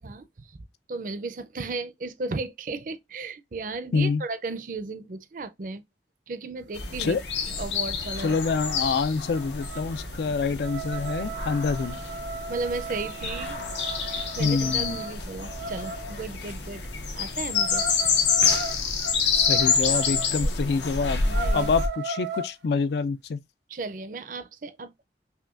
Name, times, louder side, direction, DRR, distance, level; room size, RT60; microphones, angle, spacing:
voice 1, 0.0-5.8 6.3-7.2 7.5-8.4 10.5-10.6 12.5-13.6 14.1-16.8 17.1-17.9 20.3-20.5 21.2-21.7 23.7-25.0, right 3 dB, 50° right, 0.5 m, -35 dB
sound 1, 6.7-21.9, left 5 dB, 85° left, 1.0 m, -28 dB
voice 2, 8.2-12.0 14.4-15.0 19.3-21.2 21.5-23.4, left 4 dB, 70° left, 0.4 m, -26 dB
sound 2, 8.3-8.4 8.7-9.0 9.3-16.2 17.5-20.3 20.7-20.8 21.2-22.5, right 2 dB, 85° right, 0.7 m, -36 dB
5.6 x 2.2 x 2.4 m
head